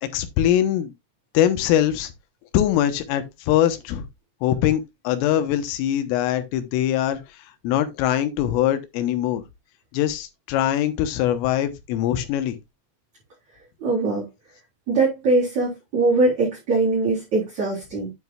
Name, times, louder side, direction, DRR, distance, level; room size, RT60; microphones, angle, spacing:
voice 1, 0.0-0.9 1.4-2.1 2.5-4.1 4.4-7.2 7.6-9.4 9.9-12.6, left 11 dB, 85° left, 3.5 m, -22 dB
voice 2, 13.8-14.3 14.9-18.1, right 3 dB, 35° right, 4.6 m, -21 dB
9.2 x 8.1 x 2.4 m
omnidirectional pair, 5.8 m